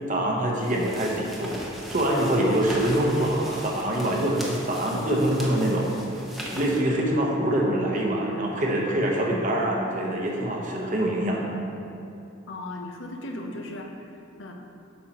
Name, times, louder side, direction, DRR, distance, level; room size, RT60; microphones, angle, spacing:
voice 1, 0.1-5.9 6.5-11.5, right 1 dB, 40° right, -2 dB, 1.0 m, -25 dB
sound 1, 0.5-6.8, equal, ahead, 0.8 m, -39 dB
voice 2, 12.5-14.5, left 1 dB, 70° left, 2 dB, 0.8 m, -37 dB
8.3 x 6.3 x 3.0 m, 2.7 s
head